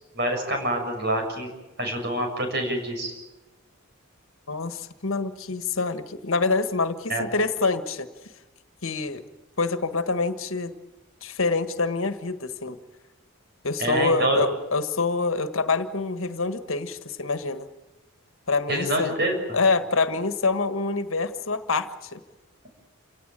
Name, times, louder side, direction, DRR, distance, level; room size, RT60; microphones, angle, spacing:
voice 1, 0.2-1.5 1.8-3.1 7.1-7.3 13.8-14.4 18.7-19.3, right 1 dB, 50° right, 3 dB, 6.8 m, -26 dB
voice 2, 4.5-8.1 8.8-9.2 9.6-10.7 11.2-12.8 13.6-17.7 18.5-19.1 19.5-22.2, left 3 dB, 75° left, 10 dB, 1.5 m, -26 dB
28.0 x 17.5 x 9.0 m, 1.1 s
head